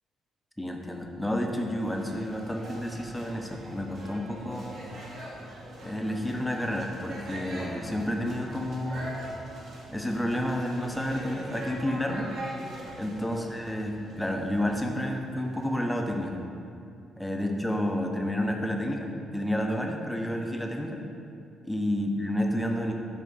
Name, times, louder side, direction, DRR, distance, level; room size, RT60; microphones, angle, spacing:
voice 1, 0.6-4.9 5.8-9.3 9.9-12.3 13.0-16.4 17.2-21.0 21.6-22.9, left 1 dB, 5° left, 2 dB, 0.6 m, -30 dB
sound 1, 1.8-15.7, right 1 dB, 65° right, 1.3 m, -42 dB
5.3 x 3.5 x 5.2 m, 2.5 s
cardioid pair, 90°, 0 cm